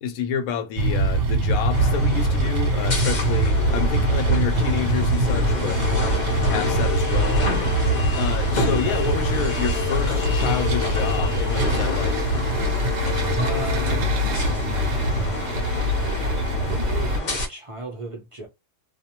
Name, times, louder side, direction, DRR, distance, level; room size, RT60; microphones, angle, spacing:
voice 1, 0.0-5.8 6.5-7.5 8.1-12.2, left 7 dB, 80° left, 1.0 m, -29 dB
sound 1, 0.8-17.2, right 1 dB, 70° right, 0.9 m, -23 dB
sound 2, 1.7-17.5, left 3 dB, 45° left, 0.6 m, -29 dB
voice 2, 13.3-14.1 16.6-18.5, right 1 dB, 45° right, 0.4 m, -35 dB
2.5 x 2.0 x 2.8 m
omnidirectional pair, 1.5 m